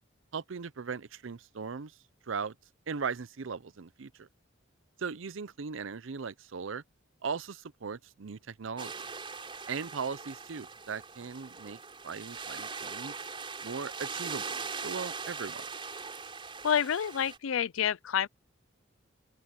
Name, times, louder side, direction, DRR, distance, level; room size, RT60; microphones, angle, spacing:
voice 1, 0.3-1.9 2.3-2.5 2.9-4.3 5.0-6.8 7.2-8.9 9.7-11.8 12.0-13.2 13.6-15.6, right 5 dB, 80° right, 0.6 m, -38 dB
sound 1, 8.8-17.4, right 5 dB, 25° right, 5.2 m, -41 dB
voice 2, 16.6-18.3, left 8 dB, 85° left, 0.4 m, -28 dB
open air
head